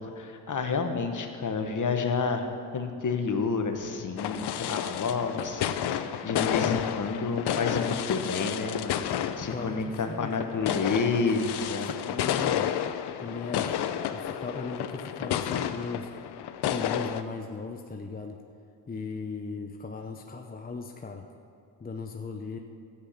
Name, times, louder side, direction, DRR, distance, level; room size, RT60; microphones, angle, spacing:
voice 1, 0.0-2.5 2.7-11.9, left 4 dB, 40° left, 6 dB, 1.4 m, -30 dB
sound 1, 4.2-17.2, left 10 dB, 60° left, 0.7 m, -31 dB
voice 2, 9.5-10.4 11.8-12.7 13.2-13.8 14.1-16.1 16.6-18.4 18.9-21.2 21.8-22.6, left 4 dB, 20° left, 4 dB, 0.8 m, -37 dB
12.5 x 8.7 x 5.8 m, 2.5 s
supercardioid pair, 65°, 46 cm